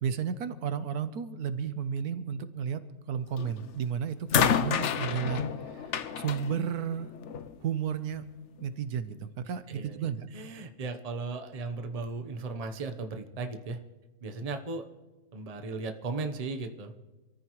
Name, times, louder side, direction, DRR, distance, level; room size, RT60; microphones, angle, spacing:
voice 1, 0.0-2.8 3.1-7.1 7.6-8.2 8.6-10.3, right 7 dB, 80° right, 11 dB, 1.4 m, -33 dB
sound 1, 3.4-3.7 4.3-7.6 8.6-8.7, left 8 dB, 60° left, 0.9 m, -30 dB
voice 2, 9.7-13.8 14.2-14.8 15.3-16.9, right 3 dB, 30° right, 6 dB, 0.9 m, -36 dB
26.5 x 14.5 x 3.1 m, 1.2 s
omnidirectional pair, 1.6 m